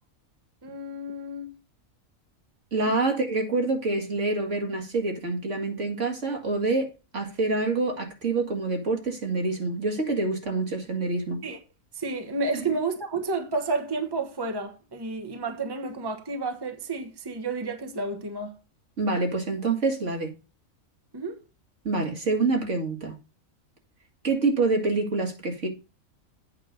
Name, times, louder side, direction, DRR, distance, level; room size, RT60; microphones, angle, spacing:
voice 1, 0.6-1.6 2.8-3.0 11.4-11.6 11.9-18.5 21.1-21.4, right 3 dB, 20° right, 1.2 m, -31 dB
voice 2, 2.7-11.4 19.0-20.3 21.8-23.2 24.2-25.7, right 3 dB, 60° right, 2.3 m, -26 dB
8.5 x 6.0 x 5.1 m
omnidirectional pair, 1.4 m